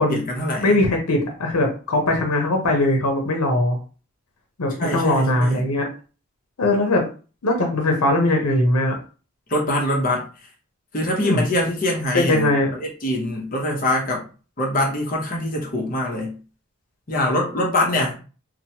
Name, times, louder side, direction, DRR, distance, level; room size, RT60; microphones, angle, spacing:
voice 1, 0.0-0.7 4.8-5.7 9.5-10.3 10.9-12.5 12.8-14.2 14.6-16.4 17.1-18.2, left 1 dB, 40° left, -1 dB, 0.7 m, -23 dB
voice 2, 0.6-3.8 4.6-5.9 6.6-7.0 7.4-9.0 11.2-11.4 12.1-12.7, left 2 dB, 85° left, 2 dB, 0.7 m, -20 dB
2.9 x 2.0 x 2.8 m, 0.36 s
head